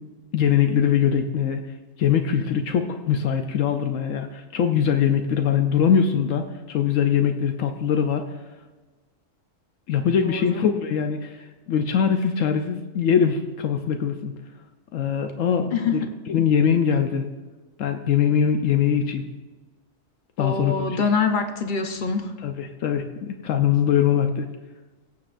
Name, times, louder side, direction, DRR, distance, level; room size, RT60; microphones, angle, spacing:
voice 1, 0.3-1.6 2.0-8.2 9.9-11.4 11.7-14.3 14.9-17.3 17.8-19.3 20.4-21.1 22.4-24.5, left 8 dB, 80° left, 6 dB, 1.1 m, -22 dB
voice 2, 10.2-10.6 15.7-16.1 20.4-22.3, left 5 dB, 45° left, 7 dB, 0.8 m, -25 dB
21.5 x 7.6 x 2.5 m, 1.2 s
omnidirectional pair, 1.3 m